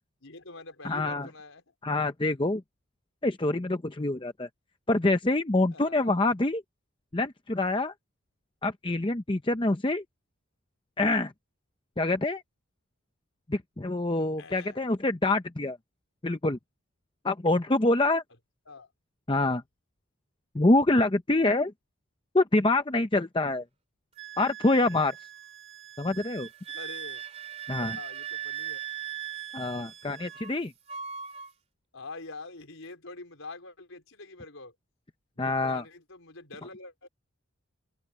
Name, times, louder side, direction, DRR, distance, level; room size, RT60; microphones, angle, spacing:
voice 1, 0.2-1.7 5.7-6.2 14.4-14.8 18.7-18.9 26.7-27.2 27.8-28.8 31.9-34.7 35.3-37.1, left 3 dB, 65° left, 4.6 m, -45 dB
voice 2, 0.8-1.3 1.8-2.6 3.2-4.5 4.9-6.6 7.1-7.9 8.6-10.0 11.0-11.3 12.0-12.4 13.5-15.8 16.2-16.6 17.2-18.2 19.3-19.6 20.5-21.7 22.3-23.6 24.4-25.1 26.0-26.5 27.7-28.0 29.5-30.7 35.4-35.8, left 2 dB, 25° left, 0.7 m, -26 dB
Wind instrument woodwind instrument, 24.2-30.6 30.9-31.5, right 10 dB, 30° right, 3.2 m, -39 dB
open air
head